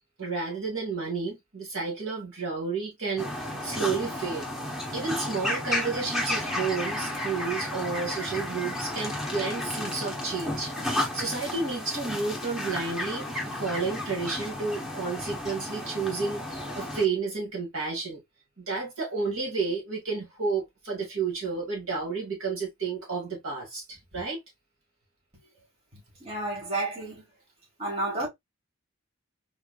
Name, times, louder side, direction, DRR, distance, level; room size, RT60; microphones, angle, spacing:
voice 1, 0.2-3.3 3.6-4.4 4.9-18.2 18.6-24.4, right 4 dB, 70° right, 2.2 m, -31 dB
sound 1, 3.2-17.0, left 1 dB, ahead, 1.0 m, -33 dB
voice 2, 26.2-27.2 27.8-28.3, right 2 dB, 30° right, 2.0 m, -30 dB
3.8 x 3.5 x 2.4 m
head